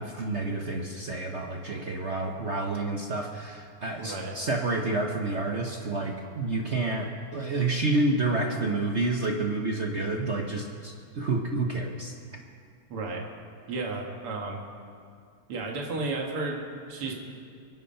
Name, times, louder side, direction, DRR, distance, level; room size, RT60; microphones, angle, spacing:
voice 1, 0.0-12.2, right 2 dB, 45° right, 2 dB, 0.9 m, -29 dB
voice 2, 4.0-4.4 12.9-13.3 13.7-14.6 15.5-17.2, right 3 dB, 85° right, 0 dB, 2.7 m, -33 dB
23.5 x 9.6 x 5.6 m, 2.4 s
omnidirectional pair, 2.4 m